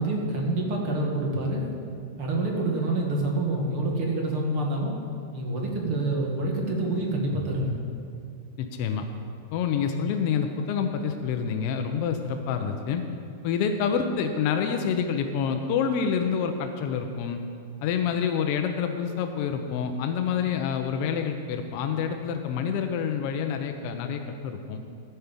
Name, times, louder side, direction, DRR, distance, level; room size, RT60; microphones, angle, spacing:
voice 1, 0.0-1.7 2.2-4.9 5.3-7.8, right 2 dB, 35° right, 0 dB, 1.9 m, -27 dB
voice 2, 8.6-9.1 9.5-13.0 13.4-17.4 17.8-24.8, left 7 dB, 35° left, 6 dB, 0.7 m, -27 dB
14.0 x 5.6 x 7.4 m, 2.4 s
supercardioid pair, 175°, 0 cm